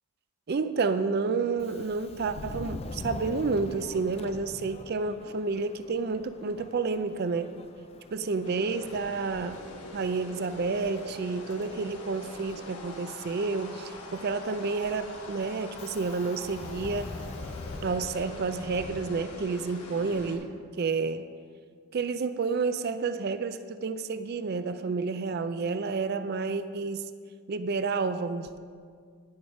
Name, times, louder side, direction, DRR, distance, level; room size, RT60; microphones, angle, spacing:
voice 1, 0.5-7.5 8.1-9.6 9.9-17.2 17.8-20.5 20.8-21.3 21.9-27.0 27.5-28.6, right 4 dB, 45° right, 11 dB, 0.4 m, -30 dB
Subway metro underground, 1.5-19.9, left 3 dB, 25° left, 0.3 m, -45 dB
sound 1, 8.3-20.3, left 2 dB, 90° left, 1.6 m, -44 dB
10.0 x 8.0 x 5.3 m, 2.1 s
head